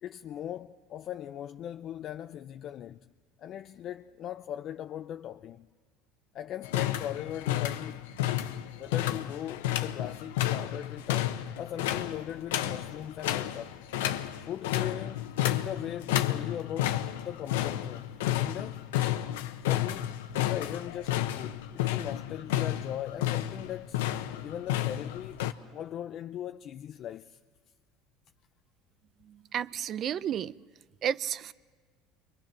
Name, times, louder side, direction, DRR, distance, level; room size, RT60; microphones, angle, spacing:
voice 1, 0.0-3.0 3.4-5.7 6.3-8.1 8.8-13.7 14.5-18.8 19.6-24.0 24.4-25.4 25.7-27.4, left 10 dB, 50° left, 0.6 m, -39 dB
sound 1, 6.6-25.5, left 13 dB, 85° left, 1.0 m, -31 dB
voice 2, 29.3-30.5 31.0-31.5, right 9 dB, 45° right, 0.6 m, -32 dB
29.0 x 23.0 x 6.0 m
supercardioid pair, 95°, 0 cm